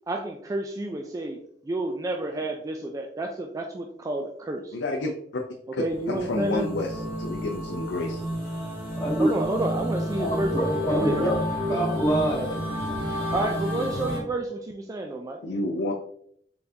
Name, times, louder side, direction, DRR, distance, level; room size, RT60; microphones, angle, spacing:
voice 1, 0.1-1.4 1.6-4.8 5.8-6.7 9.2-11.4 13.3-15.4, right 2 dB, 20° right, 3 dB, 0.3 m, -30 dB
voice 2, 4.7-5.4 5.7-8.2 15.4-15.9, left 2 dB, 85° left, 1 dB, 0.5 m, -30 dB
sound 1, 5.9-14.2, equal, 35° right, 1.7 m, -31 dB
voice 3, 9.0-9.3 10.2-11.3 11.7-12.6 12.9-13.3, right 1 dB, 20° left, -4 dB, 1.7 m, -26 dB
4.0 x 3.8 x 2.7 m, 0.67 s
head